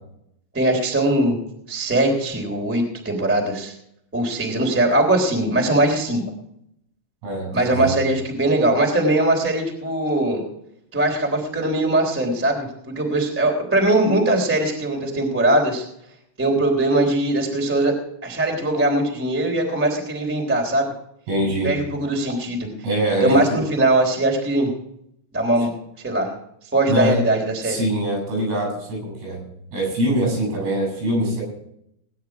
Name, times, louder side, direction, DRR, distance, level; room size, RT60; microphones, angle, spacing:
voice 1, 0.5-1.4 1.7-3.7 4.1-6.2 7.5-10.4 10.9-15.8 16.4-17.9 18.2-20.9 21.6-22.7 23.2-24.7 25.3-25.7 26.0-26.3 26.7-27.8, right 1 dB, 5° right, 1 dB, 2.0 m, -20 dB
voice 2, 7.2-7.9 21.3-21.7 22.8-23.7 26.9-27.2 27.6-29.4 29.7-31.4, right 1 dB, 85° right, 2 dB, 10.0 m, -23 dB
20.0 x 9.9 x 4.8 m, 0.75 s
omnidirectional pair, 5.9 m